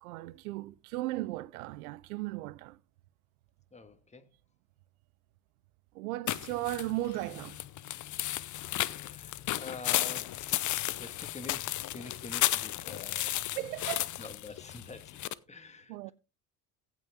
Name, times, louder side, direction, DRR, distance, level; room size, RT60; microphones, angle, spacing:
voice 1, 0.0-2.8 5.9-7.6 13.6-14.2 15.9-16.1, right 17 dB, 85° right, 0.6 m, -36 dB
voice 2, 3.7-4.2 8.6-13.6 14.2-15.2 15.5-16.1, left 3 dB, 15° left, 1.7 m, -47 dB
sound 1, 6.3-15.3, left 14 dB, 45° left, 0.7 m, -34 dB
15.5 x 6.1 x 3.5 m
supercardioid pair, 80°, 42 cm